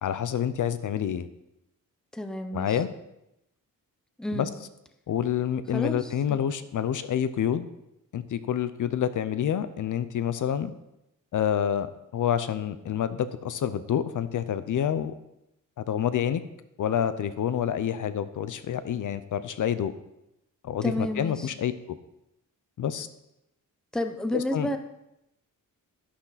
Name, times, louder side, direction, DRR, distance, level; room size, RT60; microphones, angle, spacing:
voice 1, 0.0-1.3 2.5-2.9 4.3-4.5 5.1-7.7 8.1-10.7 11.3-11.9 12.1-15.1 15.8-16.4 16.8-19.9 20.6-22.0 22.8-23.1 24.3-24.7, left 9 dB, 65° left, 13 dB, 0.7 m, -28 dB
voice 2, 2.1-2.8 4.2-4.5 5.7-6.4 20.8-21.5 23.9-24.8, left 1 dB, ahead, 7 dB, 0.7 m, -31 dB
11.5 x 11.5 x 4.1 m, 0.86 s
wide cardioid pair, 180°, 34 cm